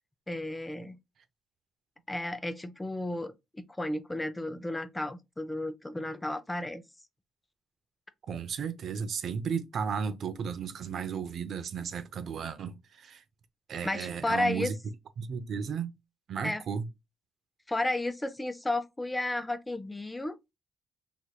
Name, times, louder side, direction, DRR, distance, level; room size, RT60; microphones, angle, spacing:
voice 1, 0.3-1.0 2.1-6.8 13.8-14.7 16.4-16.6 17.7-20.3, left 1 dB, 15° left, 0.4 m, -33 dB
voice 2, 8.3-13.2 13.7-14.7 15.2-15.9 16.3-16.9, right 6 dB, 60° right, 0.4 m, -34 dB
3.2 x 2.9 x 2.2 m
cardioid pair, 90°, 0 cm